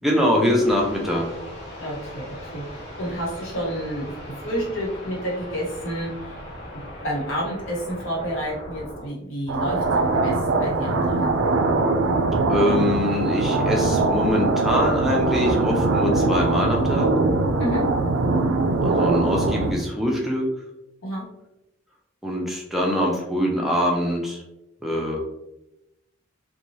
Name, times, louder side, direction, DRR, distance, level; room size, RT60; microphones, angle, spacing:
voice 1, 0.0-1.3 12.5-17.1 18.8-20.5 22.2-24.4 24.8-25.2, left 1 dB, ahead, -2 dB, 0.4 m, -23 dB
sound 1, 0.6-9.1, equal, 50° left, 1.2 m, -39 dB
voice 2, 1.8-6.4 6.7-11.3 17.6-17.8 21.0-21.3, equal, 75° left, -4 dB, 1.1 m, -30 dB
sound 2, 9.5-19.7, right 3 dB, 75° right, 0.4 m, -22 dB
2.7 x 2.2 x 3.0 m, 0.90 s
head